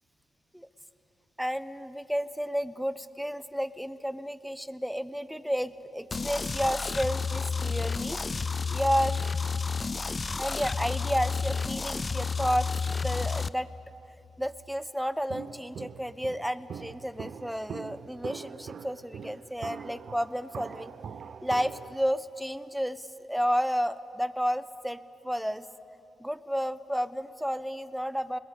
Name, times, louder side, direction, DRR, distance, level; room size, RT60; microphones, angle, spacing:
voice 1, 1.4-8.2 8.7-9.3 10.4-13.7 14.4-20.9 21.4-25.7 26.2-28.4, equal, ahead, 14 dB, 1.0 m, -31 dB
sound 1, 6.1-13.5, left 5 dB, 35° left, 0.6 m, -31 dB
Walk footsteps, 15.3-22.0, right 7 dB, 65° right, 0.7 m, -42 dB
29.0 x 21.0 x 8.4 m, 2.9 s
cardioid pair, 65°, 0 cm